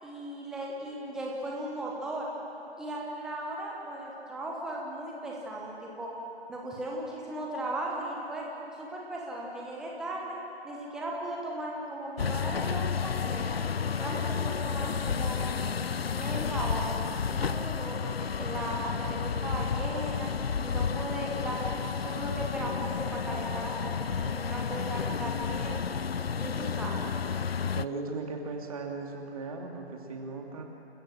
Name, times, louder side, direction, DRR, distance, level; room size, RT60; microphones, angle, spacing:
voice 1, 0.0-2.3 2.8-6.1 6.5-8.5 8.8-10.4 10.6-13.6 13.9-15.5 16.1-16.9 17.3-20.3 20.6-25.8 26.4-27.1, right 1 dB, ahead, -3 dB, 1.1 m, -37 dB
sound 1, 12.2-27.9, left 6 dB, 65° left, 0.6 m, -31 dB
voice 2, 27.8-30.6, right 3 dB, 30° right, 1 dB, 2.6 m, -37 dB
29.0 x 14.0 x 7.5 m, 3.0 s
figure-of-eight pair, 155°, 33 cm